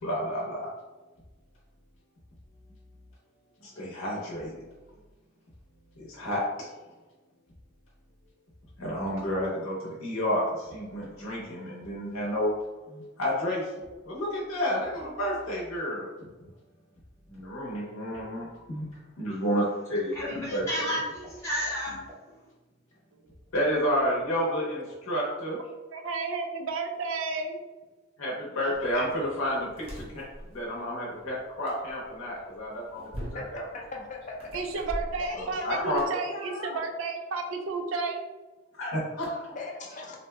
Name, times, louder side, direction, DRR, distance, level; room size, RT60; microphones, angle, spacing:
voice 1, 0.0-0.7 3.6-4.6 6.0-6.7 8.8-12.6 12.9-13.7 14.1-16.3 17.3-18.8 19.2-20.9 23.5-25.6 28.2-30.2 30.5-33.6 35.3-36.1 38.8-39.4, equal, 90° left, 0.7 m, -30 dB
voice 2, 20.1-22.2, equal, 15° left, 0.8 m, -32 dB
voice 3, 25.9-27.6 34.5-38.2, right 4 dB, 75° right, 0.4 m, -32 dB
sound 1, 28.7-36.1, equal, 30° right, 0.7 m, -43 dB
voice 4, 33.7-34.4 35.2-36.8 39.6-40.2, left 2 dB, 35° left, 0.4 m, -39 dB
2.6 x 2.1 x 3.2 m
head